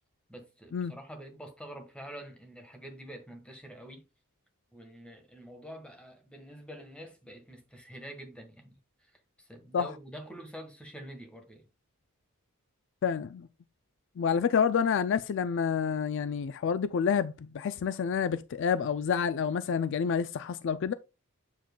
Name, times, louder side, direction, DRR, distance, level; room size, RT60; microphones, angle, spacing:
voice 1, 0.3-4.1 4.7-8.8 9.4-11.6, equal, 5° left, 1.3 m, -46 dB
voice 2, 13.0-13.5 14.2-20.9, left 7 dB, 55° left, 0.3 m, -28 dB
7.4 x 7.2 x 2.2 m
head